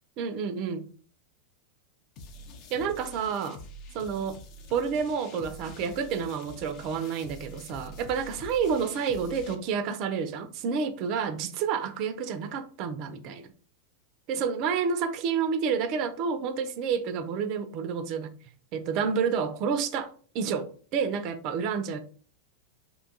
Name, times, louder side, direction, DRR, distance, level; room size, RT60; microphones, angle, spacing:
voice 1, 0.2-0.9 2.7-3.6 3.9-4.4 4.7-13.5 14.3-18.3 18.7-22.0, right 6 dB, 40° right, 0.3 m, -29 dB
sound 1, 2.2-9.6, left 1 dB, 40° left, 0.4 m, -46 dB
2.5 x 2.2 x 2.6 m
figure-of-eight pair, 90°, 0 cm